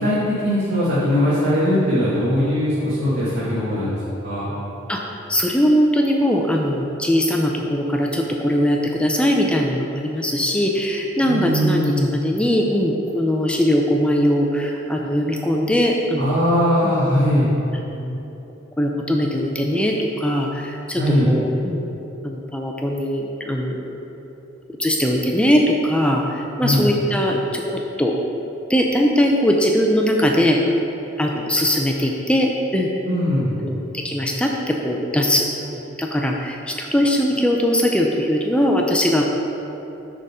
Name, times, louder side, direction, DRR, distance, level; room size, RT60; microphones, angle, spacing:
voice 1, 0.0-3.9 4.2-4.5 11.2-12.1 16.2-17.5 21.0-21.3 26.6-26.8 33.1-33.6, equal, 55° right, -11 dB, 1.6 m, -20 dB
voice 2, 5.3-16.4 16.8-16.9 17.7-18.2 18.8-21.8 22.2-24.0 24.8-28.1 28.7-30.6 31.2-32.9 33.6-39.3, equal, 5° left, 0 dB, 0.4 m, -20 dB
6.2 x 5.1 x 5.5 m, 3.0 s
head